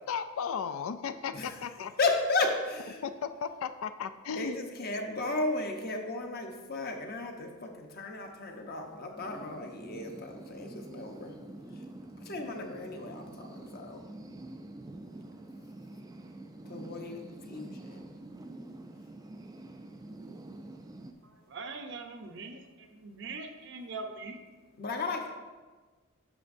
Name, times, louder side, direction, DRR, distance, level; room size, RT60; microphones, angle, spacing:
voice 1, 0.0-1.9 3.0-4.6, left 6 dB, 70° left, 11 dB, 0.3 m, -35 dB
voice 2, 2.0-3.0 4.4-11.3 12.3-14.0 16.7-17.2 17.5-18.1 24.8-25.3, left 3 dB, 45° left, 3 dB, 0.9 m, -34 dB
sound 1, 9.2-21.1, right 2 dB, 15° right, 0.3 m, -46 dB
voice 3, 21.2-24.4, right 3 dB, 55° right, 5 dB, 0.7 m, -42 dB
10.5 x 6.2 x 2.6 m, 1.3 s
head